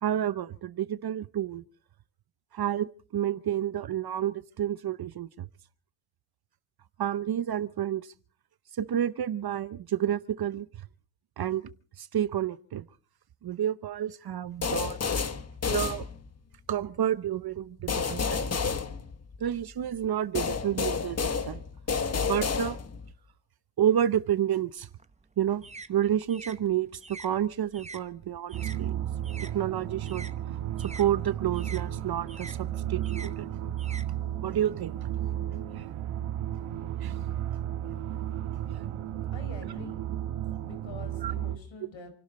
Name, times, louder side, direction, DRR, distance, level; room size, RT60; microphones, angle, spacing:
voice 1, 0.0-1.6 2.5-2.9 3.1-5.5 7.0-8.1 8.8-10.7 11.4-11.6 12.0-12.8 13.4-15.0 15.7-16.1 16.7-18.6 19.4-21.6 22.3-22.8 23.8-24.9 25.4-25.6 25.9-29.0 29.4-30.3 31.0-33.5 34.4-35.1 35.7-35.9 37.0-37.1 41.2-41.3, right 10 dB, 50° right, 0.8 m, -30 dB
sound 1, 14.6-16.5 17.9-19.6 20.4-23.1, left 5 dB, 30° left, 1.3 m, -30 dB
sound 2, 24.8-29.5 29.8-34.7, right 3 dB, 15° right, 0.9 m, -47 dB
sound 3, 28.5-41.6, right 11 dB, 90° right, 1.7 m, -33 dB
voice 2, 38.5-39.0 39.3-40.1 40.6-42.1, left 4 dB, 65° left, 5.3 m, -46 dB
28.5 x 12.0 x 4.2 m
cardioid pair, 105°, 49 cm